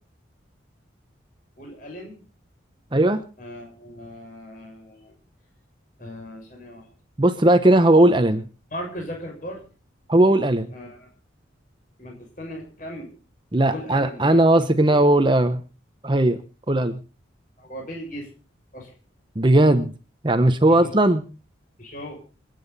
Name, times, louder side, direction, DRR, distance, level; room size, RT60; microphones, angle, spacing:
voice 1, 1.6-2.2 3.4-5.1 6.0-6.9 8.7-9.6 10.7-11.1 12.0-13.1 13.6-14.4 14.9-15.0 17.6-18.3 18.7-18.9 20.7-20.9 21.8-22.2, equal, 45° left, 0 dB, 6.7 m, -37 dB
voice 2, 2.9-3.2 7.2-8.5 10.1-10.7 13.5-15.6 16.0-16.4 16.7-17.0 19.4-19.9 20.2-21.2, right 1 dB, 25° right, 9 dB, 0.9 m, -17 dB
27.0 x 9.4 x 4.1 m, 0.35 s
head